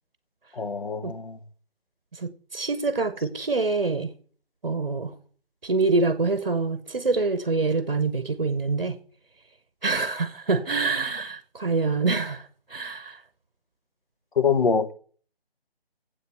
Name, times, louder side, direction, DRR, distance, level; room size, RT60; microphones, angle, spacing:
voice 1, 0.5-1.4 14.4-14.9, left 6 dB, 55° left, 1.0 m, -24 dB
voice 2, 2.1-4.1 4.6-5.1 5.6-9.0 9.8-12.4 12.7-13.2, right 3 dB, 45° right, 0.9 m, -25 dB
9.5 x 7.9 x 4.5 m
figure-of-eight pair, 155°, 31 cm